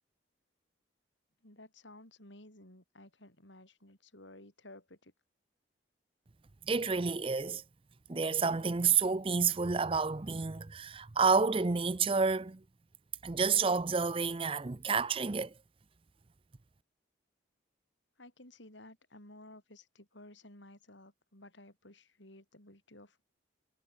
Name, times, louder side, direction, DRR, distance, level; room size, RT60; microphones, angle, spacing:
voice 1, 1.4-5.1 18.2-23.2, left 1 dB, 75° left, 7.1 m, -55 dB
voice 2, 6.7-7.6 8.1-12.6 13.2-15.5, right 5 dB, 30° right, 0.5 m, -29 dB
head